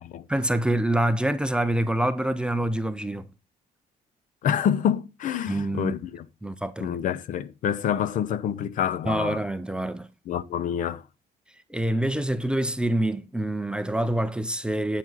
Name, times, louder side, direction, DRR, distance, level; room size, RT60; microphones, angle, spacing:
voice 1, 0.3-3.3 5.5-6.0 6.4-7.0 9.1-10.1 11.7-15.0, right 1 dB, 5° right, 0.5 m, -26 dB
voice 2, 4.4-6.3 6.8-9.4 10.3-11.0, left 9 dB, 55° left, 0.6 m, -27 dB
9.0 x 7.4 x 3.9 m
cardioid pair, 165°, 16 cm